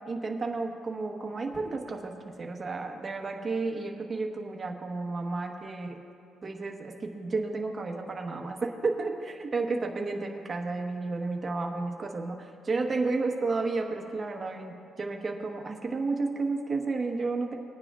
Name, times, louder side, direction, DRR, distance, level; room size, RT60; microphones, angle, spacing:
voice 1, 0.1-6.0 6.4-17.5, right 3 dB, 25° right, 2 dB, 1.2 m, -32 dB
21.5 x 9.6 x 2.4 m, 2.4 s
cardioid pair, 120°, 0 cm